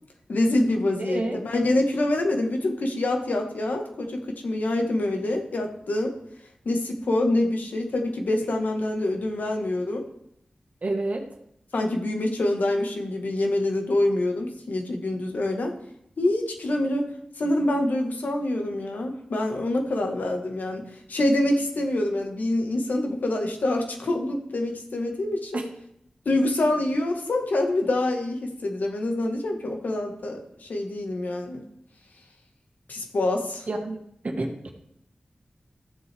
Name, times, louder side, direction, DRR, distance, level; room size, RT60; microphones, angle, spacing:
voice 1, 0.3-6.2 6.6-10.1 11.7-15.8 16.2-17.1 17.4-25.6 26.2-31.6 32.9-33.7, left 1 dB, 80° left, 3 dB, 1.5 m, -26 dB
voice 2, 1.0-1.4 10.8-11.3 25.5-25.7 33.7-34.0 34.2-34.7, right 2 dB, 55° right, 3 dB, 1.6 m, -29 dB
15.0 x 7.2 x 3.5 m, 0.75 s
cardioid pair, 50°, 3 cm